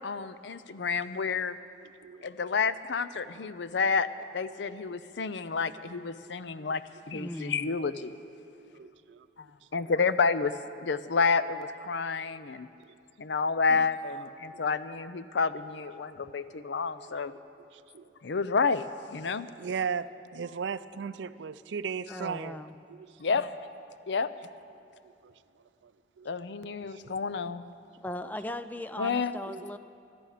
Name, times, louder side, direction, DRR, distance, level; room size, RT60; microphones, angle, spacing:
voice 1, 0.0-1.6 2.2-4.1 4.3-6.8 7.1-8.1 9.4-9.5 9.7-10.5 10.8-12.7 13.2-17.3 18.2-18.9 19.1-19.5 23.2-23.5 24.1-24.3 26.2-27.6 29.0-29.3, left 5 dB, 85° left, 14 dB, 0.6 m, -29 dB
voice 2, 6.3-6.7 8.6-9.3 9.8-9.9 13.7-13.9 17.9-18.0 19.6-22.6 22.9-23.1 25.2-25.3 25.8-25.9 26.2-26.3 27.0-27.1 29.5-29.7, right 6 dB, 85° right, 15 dB, 0.4 m, -37 dB
voice 3, 7.1-7.7 19.2-19.3 22.1-22.8 28.0-29.8, left 1 dB, 10° left, 11 dB, 0.4 m, -38 dB
20.5 x 13.0 x 5.0 m, 2.6 s
head